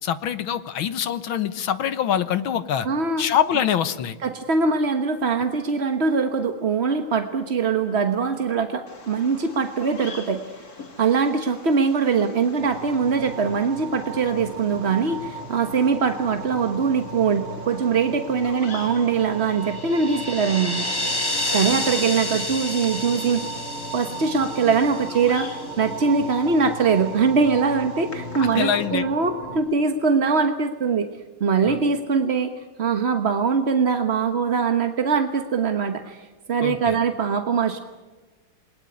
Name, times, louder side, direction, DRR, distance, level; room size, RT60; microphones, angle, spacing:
voice 1, 0.0-2.9 3.2-4.2 28.4-29.0 31.6-31.8 36.6-37.0, left 9 dB, 70° left, 13 dB, 1.8 m, -24 dB
voice 2, 2.8-3.2 4.2-10.4 11.0-20.9 21.1-21.3 21.5-23.5 23.9-31.1 31.4-32.5 32.8-37.8, right 5 dB, 40° right, 7 dB, 1.1 m, -22 dB
Bird vocalization bird call bird song, 8.9-28.9, left 4 dB, 45° left, 2.8 m, -46 dB
sound 1, 12.6-29.6, right 2 dB, 20° right, 4.0 m, -36 dB
sound 2, 19.5-25.7, left 1 dB, 10° left, 2.3 m, -30 dB
28.5 x 21.0 x 9.8 m, 1.3 s
omnidirectional pair, 2.4 m